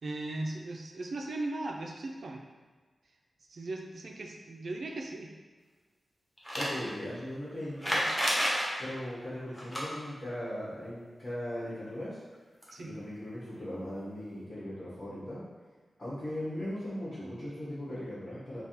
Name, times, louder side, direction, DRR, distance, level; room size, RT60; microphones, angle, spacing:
voice 1, 0.0-2.4 3.5-5.3 12.7-12.9, right 2 dB, 60° right, 1 dB, 0.4 m, -38 dB
sound 1, 6.4-6.8 7.8-8.7 9.5-9.8 12.3-12.4 12.6-12.7 13.8-13.9, equal, 5° left, 0.8 m, -29 dB
voice 2, 6.5-8.1 8.8-12.2 12.8-15.4 16.0-18.6, left 1 dB, 35° left, -11 dB, 1.4 m, -38 dB
3.4 x 2.3 x 4.3 m, 1.4 s
wide cardioid pair, 155°, 0 cm